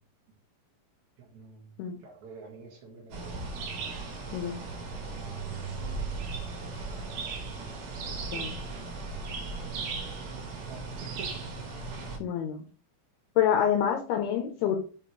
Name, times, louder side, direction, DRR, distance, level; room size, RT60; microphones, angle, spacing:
voice 1, 1.2-1.7 2.0-3.4 5.5-6.0 8.1-8.6 9.2-9.9 10.7-11.4, right 4 dB, 60° right, -1 dB, 2.1 m, -48 dB
sound 1, 3.1-12.2, right 4 dB, 85° right, 3.9 m, -37 dB
voice 2, 12.2-12.6 13.4-14.8, left 9 dB, 80° left, 2 dB, 2.5 m, -27 dB
8.2 x 4.2 x 3.1 m, 0.38 s
omnidirectional pair, 5.0 m